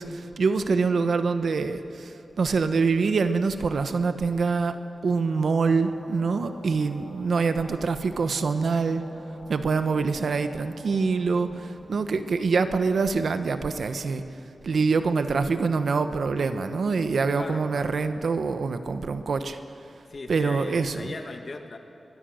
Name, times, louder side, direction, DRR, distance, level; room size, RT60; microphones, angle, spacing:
voice 1, 0.0-2.1 2.4-4.8 5.0-9.0 9.5-14.2 14.6-19.6 20.3-21.1, right 4 dB, 80° right, 9 dB, 1.1 m, -25 dB
sound 1, 5.3-13.8, equal, 45° right, 4.5 m, -46 dB
voice 2, 17.3-18.0 20.1-21.8, left 3 dB, 50° left, 5 dB, 1.8 m, -38 dB
23.0 x 20.5 x 6.4 m, 2.8 s
wide cardioid pair, 105°, 0 cm